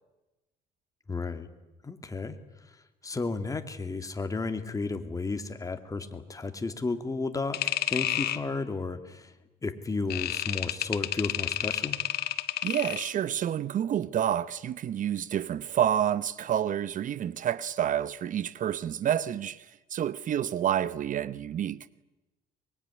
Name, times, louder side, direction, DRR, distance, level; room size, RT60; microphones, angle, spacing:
voice 1, 1.1-1.5 1.8-2.4 3.0-9.3 9.6-12.0, left 3 dB, 20° left, 2.4 m, -33 dB
sound 1, 7.5-8.4 10.1-13.1, left 13 dB, 70° left, 1.6 m, -30 dB
voice 2, 12.6-21.9, right 10 dB, 50° right, 0.8 m, -29 dB
23.5 x 22.5 x 9.7 m
cardioid pair, 110°, 17 cm